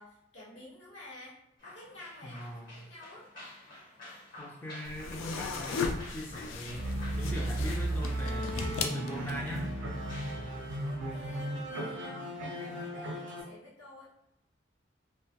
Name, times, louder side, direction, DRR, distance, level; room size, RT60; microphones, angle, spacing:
voice 1, 0.0-2.6 2.9-3.3 10.8-14.1, left 2 dB, 70° left, -6 dB, 1.0 m, -51 dB
sound 1, 1.6-11.8, left 1 dB, 45° left, 1.2 m, -51 dB
voice 2, 2.2-2.9 4.4-9.7, equal, 10° left, -1 dB, 0.3 m, -41 dB
sound 2, 4.9-9.6, left 4 dB, 90° left, 0.3 m, -37 dB
sound 3, 6.7-13.4, right 1 dB, 75° right, 0.5 m, -35 dB
2.1 x 2.1 x 2.8 m, 0.79 s
head